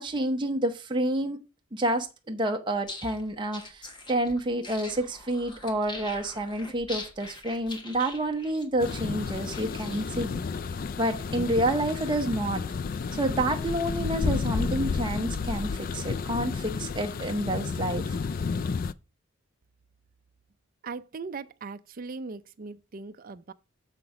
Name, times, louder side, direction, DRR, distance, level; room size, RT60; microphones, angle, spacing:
voice 1, 0.0-1.4 1.7-10.4 11.0-12.6 13.1-18.2, right 1 dB, 20° right, 0.9 m, -29 dB
sound 1, 2.7-10.3, left 2 dB, 20° left, 1.3 m, -43 dB
sound 2, 8.8-18.9, left 5 dB, 40° left, 0.3 m, -31 dB
voice 2, 20.8-23.5, right 4 dB, 40° right, 0.5 m, -39 dB
6.9 x 5.9 x 4.8 m
head